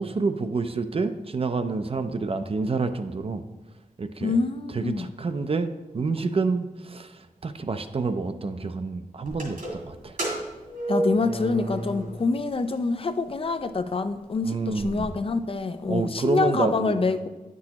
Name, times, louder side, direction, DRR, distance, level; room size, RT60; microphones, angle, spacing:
voice 1, 0.0-3.4 4.0-4.4 4.7-9.6 9.8-10.2 14.4-15.2 15.9-17.0, right 4 dB, 45° right, 9 dB, 0.4 m, -28 dB
voice 2, 4.2-5.1 10.9-17.3, left 3 dB, 40° left, 10 dB, 0.4 m, -26 dB
sound 1, 9.3-12.4 12.7-12.8 13.6-13.7 14.1-14.2 14.4-15.1, right 1 dB, 75° right, 2.2 m, -31 dB
9.5 x 6.1 x 2.9 m, 1.2 s
wide cardioid pair, 100°, 14 cm